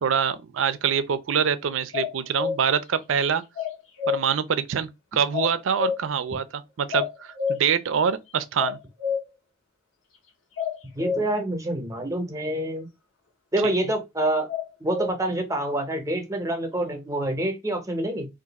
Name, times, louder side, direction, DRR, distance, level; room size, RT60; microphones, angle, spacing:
voice 1, 0.0-3.4 4.1-8.8, right 7 dB, 80° right, 0.4 m, -25 dB
sound 1, 1.9-2.6 3.6-4.2 5.3-6.1 6.9-7.6 8.6-9.3 10.6-11.2 14.5-15.1, left 6 dB, 85° left, 0.9 m, -28 dB
voice 2, 10.9-12.9 13.5-14.5 14.8-18.3, right 1 dB, 15° right, 0.7 m, -27 dB
2.5 x 2.4 x 3.9 m
head